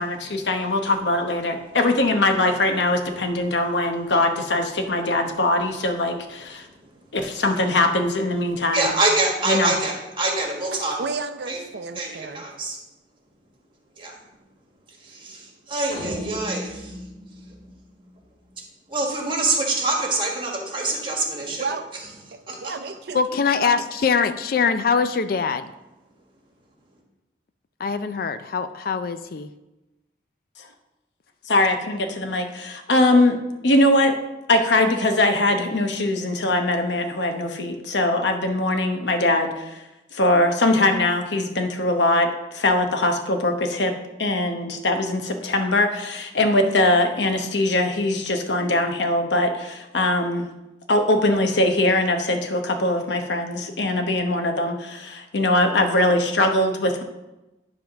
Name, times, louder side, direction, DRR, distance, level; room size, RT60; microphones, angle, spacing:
voice 1, 0.0-6.7 7.1-8.9 9.5-9.7 31.5-33.4 33.6-34.2 34.5-39.8 40.1-43.9 44.2-50.5 50.9-57.0, left 2 dB, 85° left, 0.9 m, -21 dB
voice 2, 8.7-11.0 11.5-11.6 11.9-12.8 14.0-14.2 15.0-17.0 18.9-21.7 22.5-22.7, right 2 dB, 30° right, 1.6 m, -25 dB
voice 3, 10.7-12.4 21.6-21.9 22.3-23.8, right 4 dB, 65° right, 0.5 m, -33 dB
sound 1, 15.9-18.4, equal, 25° left, 1.2 m, -36 dB
voice 4, 23.1-25.7 27.8-29.5, left 5 dB, 55° left, 0.4 m, -23 dB
10.5 x 3.5 x 5.8 m
head